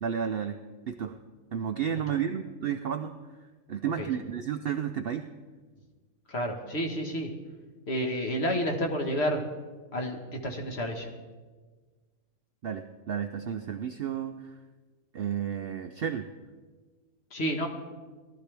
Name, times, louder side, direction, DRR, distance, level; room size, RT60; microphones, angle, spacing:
voice 1, 0.0-0.6 0.9-1.2 1.5-3.2 3.7-5.3 12.6-14.5 15.1-16.3, right 8 dB, 65° right, 8 dB, 0.6 m, -32 dB
voice 2, 6.3-7.3 7.9-9.4 9.9-10.2 10.4-11.1 17.3-17.7, equal, 50° left, 2 dB, 1.6 m, -30 dB
19.0 x 12.5 x 3.4 m, 1.4 s
omnidirectional pair, 1.5 m